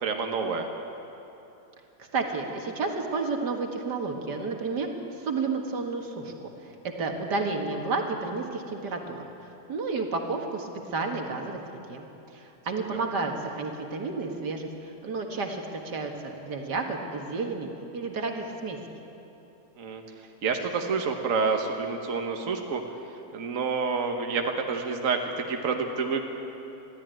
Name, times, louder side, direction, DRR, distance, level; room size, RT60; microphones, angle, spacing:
voice 1, 0.0-0.7 19.8-20.0 20.4-22.8 23.3-26.2, right 5 dB, 55° right, 3 dB, 1.6 m, -28 dB
voice 2, 2.1-4.9 5.2-6.5 6.8-9.3 9.7-12.1 12.3-18.8, right 3 dB, 75° right, 2 dB, 2.3 m, -31 dB
21.5 x 14.5 x 9.1 m, 3.0 s
omnidirectional pair, 1.8 m